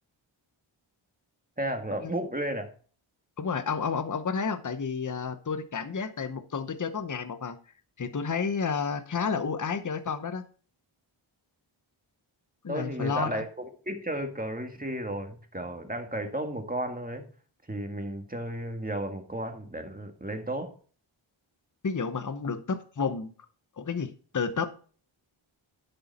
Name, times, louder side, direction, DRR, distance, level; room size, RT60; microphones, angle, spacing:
voice 1, 1.6-2.7 12.7-17.3 17.7-20.7, right 1 dB, 15° right, 4 dB, 1.8 m, -33 dB
voice 2, 3.4-7.6 8.0-10.4 12.6-13.4 21.8-23.3 23.8-24.7, left 5 dB, 40° left, 11 dB, 0.9 m, -31 dB
10.0 x 6.8 x 4.2 m, 0.42 s
wide cardioid pair, 65°, 49 cm